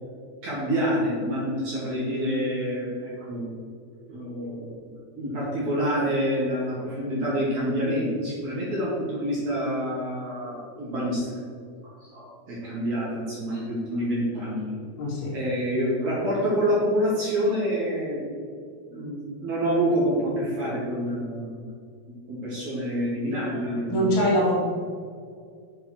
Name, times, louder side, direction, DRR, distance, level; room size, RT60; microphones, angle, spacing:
voice 1, 0.4-3.5 4.1-4.7 5.1-11.4 11.8-14.8 15.3-18.2 18.9-21.7 22.3-24.3, equal, 45° right, -7 dB, 3.4 m, -27 dB
voice 2, 15.0-15.4 23.9-24.5, equal, 70° left, -5 dB, 4.8 m, -23 dB
9.6 x 7.5 x 4.6 m, 2.2 s
omnidirectional pair, 5.9 m